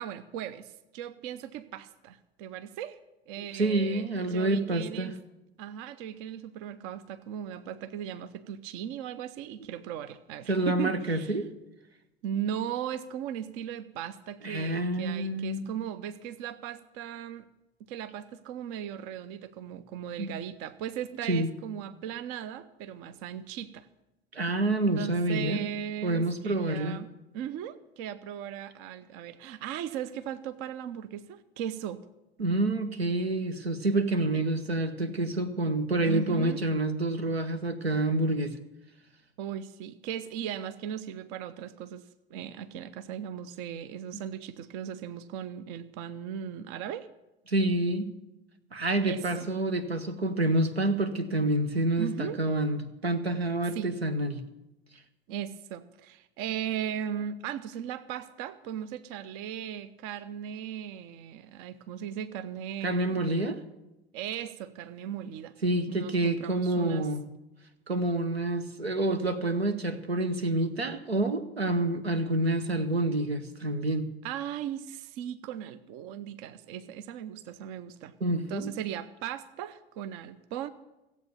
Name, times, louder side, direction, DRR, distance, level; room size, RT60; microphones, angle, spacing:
voice 1, 0.0-3.0 3.3-5.1 5.6-11.3 12.2-17.5 17.9-23.9 25.0-27.1 27.3-32.0 34.3-34.4 36.0-36.6 39.4-47.1 49.0-49.5 52.0-52.4 53.7-53.9 55.3-63.3 64.1-65.5 65.9-67.1 74.2-78.1 78.5-80.7, right 9 dB, 50° right, 13 dB, 0.7 m, -37 dB
voice 2, 3.4-5.1 10.5-11.5 14.4-15.6 20.2-20.3 21.3-21.5 24.3-25.6 26.0-27.0 32.4-38.6 47.5-48.1 48.7-54.4 62.8-63.6 65.6-67.2 67.9-74.1 78.2-78.7, right 2 dB, 85° right, 9 dB, 0.9 m, -28 dB
15.5 x 8.2 x 7.0 m, 0.97 s
figure-of-eight pair, 70°, 30 cm